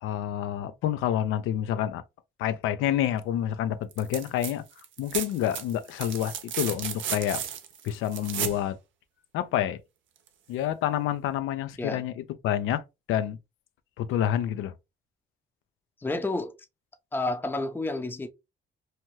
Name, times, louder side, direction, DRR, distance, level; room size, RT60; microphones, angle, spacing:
voice 1, 0.0-2.0 2.4-4.6 5.0-7.4 7.8-8.8 9.3-9.8 10.5-12.8 13.1-13.4 14.0-14.7, left 11 dB, 90° left, 0.4 m, -28 dB
sound 1, 3.9-4.5 4.8-8.6 10.3-10.4, right 9 dB, 75° right, 0.6 m, -34 dB
voice 2, 16.0-16.5 17.1-18.3, left 2 dB, 10° left, 0.5 m, -30 dB
2.8 x 2.2 x 3.1 m
cardioid pair, 90°, 20 cm